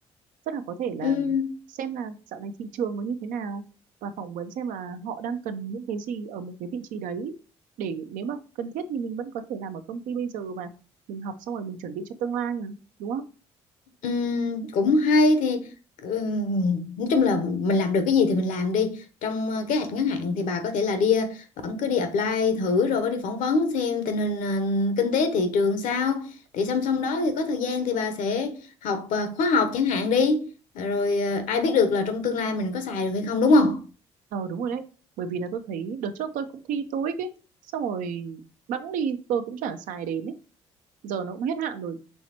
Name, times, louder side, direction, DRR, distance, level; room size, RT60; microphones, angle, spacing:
voice 1, 0.5-1.3 1.8-3.6 4.0-7.4 7.8-10.7 11.1-13.2 34.3-34.8 35.2-37.3 37.7-38.4 38.7-40.3 41.0-42.0, right 6 dB, 70° right, 0.6 m, -31 dB
voice 2, 1.0-1.5 14.0-15.7 16.0-33.8, left 3 dB, 65° left, 0.9 m, -24 dB
5.6 x 3.1 x 2.9 m
hypercardioid pair, 55°, 14 cm